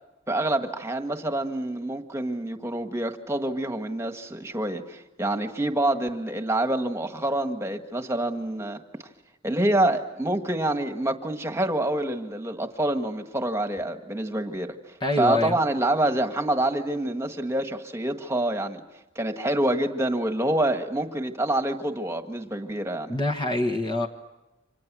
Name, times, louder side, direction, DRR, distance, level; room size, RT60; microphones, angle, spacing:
voice 1, 0.3-8.8 9.4-14.8 15.2-18.8 19.2-23.1, right 1 dB, 15° right, 6 dB, 1.7 m, -27 dB
voice 2, 15.0-15.6 23.1-24.1, left 2 dB, 25° left, 2 dB, 1.4 m, -25 dB
29.5 x 26.0 x 6.2 m, 1.0 s
head